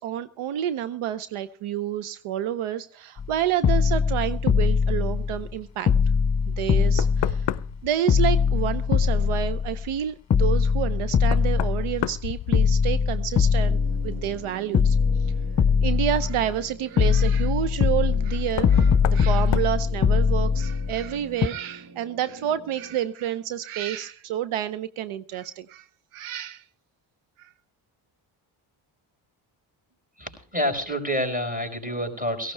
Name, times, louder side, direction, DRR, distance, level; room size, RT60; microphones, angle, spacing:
voice 1, 0.0-5.9 6.5-7.5 7.8-13.8 14.0-15.0 15.8-25.9 26.1-26.6 27.4-27.5, right 11 dB, 80° right, 0.8 m, -29 dB
sound 1, 3.2-3.3 3.6-5.5 5.9-7.8 8.1-9.9 10.3-12.2 12.5-14.4 14.7-16.6 17.0-21.1 21.4-21.5, left 6 dB, 35° left, 1.1 m, -22 dB
Knock, 6.5-6.6 7.0-7.9 10.4-10.5 11.3-13.1 13.4-14.0 15.7-15.8 18.5-18.8 19.0-19.3 19.5-19.8, left 15 dB, 60° left, 0.5 m, -31 dB
sound 2, 13.5-23.0, right 3 dB, 50° right, 1.5 m, -45 dB
voice 2, 30.2-32.5, equal, 15° right, 5.2 m, -28 dB
17.5 x 16.0 x 3.3 m
cardioid pair, 70°, 49 cm